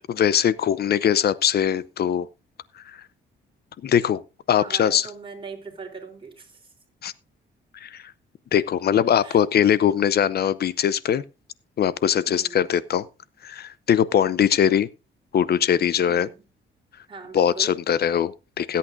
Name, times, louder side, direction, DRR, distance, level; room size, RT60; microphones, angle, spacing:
voice 1, 0.1-2.3 3.8-4.2 4.5-5.1 7.0-7.1 7.8-8.1 8.5-11.2 11.8-13.1 13.4-14.9 15.3-16.3 17.3-18.8, left 9 dB, 55° left, 0.7 m, -21 dB
voice 2, 4.6-6.7 9.2-9.4 12.3-12.6 16.1-16.4 17.1-17.8, right 4 dB, 25° right, 3.6 m, -40 dB
19.5 x 8.5 x 2.6 m
cardioid pair, 90°, 20 cm